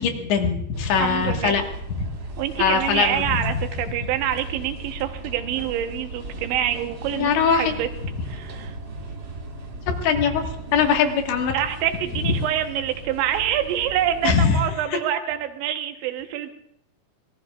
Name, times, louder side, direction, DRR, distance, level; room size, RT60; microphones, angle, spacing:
voice 1, 0.0-1.6 2.6-3.4 7.1-7.7 9.9-11.6 12.2-12.3 14.2-14.6, left 6 dB, 90° left, 3 dB, 4.0 m, -21 dB
sound 1, 0.7-14.8, right 2 dB, 50° right, 1.2 m, -37 dB
voice 2, 1.0-1.6 2.4-7.9 8.3-8.8 11.5-16.5, right 10 dB, 85° right, 6 dB, 3.4 m, -26 dB
25.5 x 19.0 x 2.4 m, 0.76 s
omnidirectional pair, 5.0 m